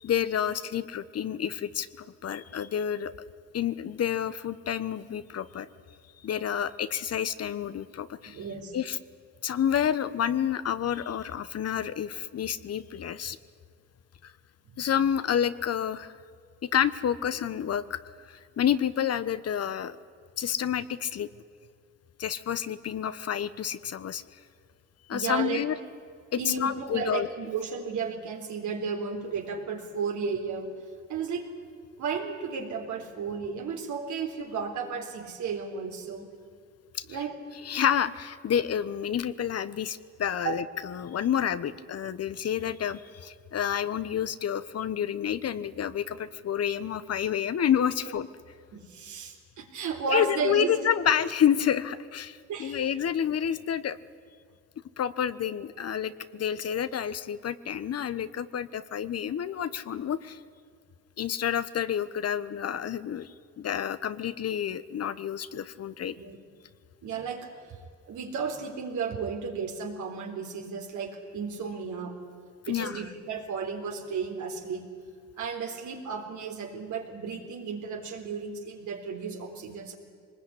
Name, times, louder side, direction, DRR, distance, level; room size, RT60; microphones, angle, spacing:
voice 1, 0.0-3.1 3.5-5.7 6.2-8.4 8.7-9.0 9.4-13.4 14.2-14.3 14.8-16.1 16.6-18.0 18.3-20.0 20.4-21.3 22.2-24.2 25.1-25.8 26.3-27.3 36.9-37.0 37.6-48.3 50.1-54.0 55.0-60.4 61.2-66.1 72.7-73.0, left 9 dB, 55° left, 14 dB, 1.1 m, -29 dB
voice 2, 8.3-8.7 14.7-14.8 25.1-25.8 26.4-30.7 31.1-31.5 32.0-36.3 37.1-37.3 40.4-40.5 41.6-41.7 48.0-48.1 48.7-50.8 51.1-51.2 52.5-52.8 66.2-66.4 67.0-67.5 68.1-72.1 72.7-74.9 75.4-79.9, right 5 dB, 75° right, 3 dB, 3.9 m, -33 dB
24.0 x 20.0 x 10.0 m, 2.2 s
cardioid pair, 90°, 30 cm